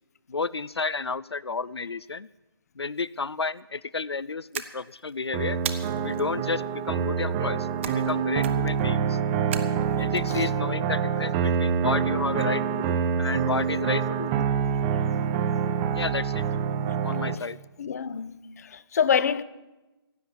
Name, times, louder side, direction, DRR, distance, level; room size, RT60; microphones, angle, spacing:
voice 1, 0.3-2.3 2.8-5.6 6.0-9.2 10.0-14.3 15.9-16.4 17.0-17.6, left 4 dB, 85° left, 0.4 m, -31 dB
sound 1, 4.5-5.1 5.7-6.2 7.8-8.1 8.4-8.8 9.5-10.2, right 8 dB, 30° right, 0.9 m, -35 dB
sound 2, 5.3-17.3, right 7 dB, 15° right, 0.5 m, -26 dB
voice 2, 17.8-19.4, left 7 dB, 40° left, 0.6 m, -26 dB
16.0 x 6.7 x 9.6 m
figure-of-eight pair, 145°, 13 cm